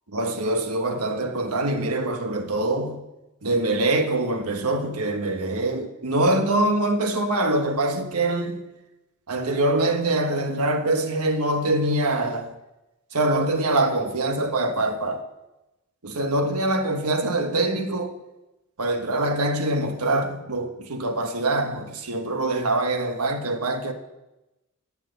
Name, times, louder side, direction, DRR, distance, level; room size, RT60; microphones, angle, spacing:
voice 1, 0.1-3.0 3.4-8.6 9.3-12.5 13.1-15.2 16.0-18.1 18.8-23.9, right 2 dB, 85° right, 1.3 m, -24 dB
12.0 x 7.5 x 7.9 m
head